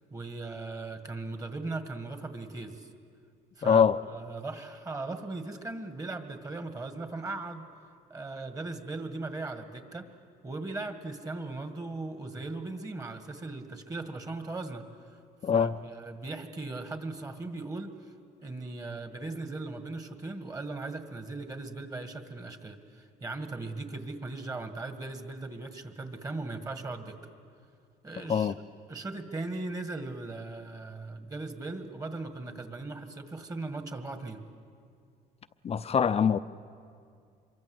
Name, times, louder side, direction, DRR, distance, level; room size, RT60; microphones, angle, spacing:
voice 1, 0.1-2.9 3.6-7.6 8.1-10.1 10.4-14.8 15.5-17.9 18.4-27.3 28.0-28.5 28.9-34.4, right 3 dB, 20° right, 2.0 m, -38 dB
voice 2, 3.6-4.0 15.4-15.7 28.3-28.5 35.6-36.4, left 7 dB, 35° left, 0.7 m, -23 dB
26.5 x 23.5 x 8.0 m
cardioid pair, 110°, 17 cm